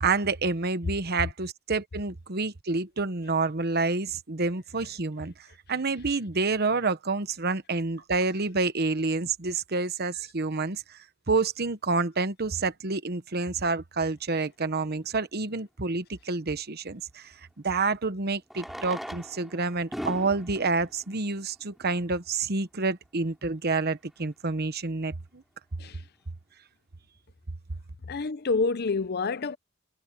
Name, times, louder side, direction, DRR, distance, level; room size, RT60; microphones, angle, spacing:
voice 1, 0.0-5.3 5.7-11.0 11.3-17.3 17.6-25.4, right 3 dB, 50° right, 1.1 m, -28 dB
Fireworks, 14.9-15.0 17.3-17.4 18.4-22.2 23.0-23.1 23.2-23.3 23.5-23.7 24.2-24.4, equal, ahead, 3.0 m, -41 dB
voice 2, 28.0-29.6, left 4 dB, 50° left, 0.7 m, -28 dB
head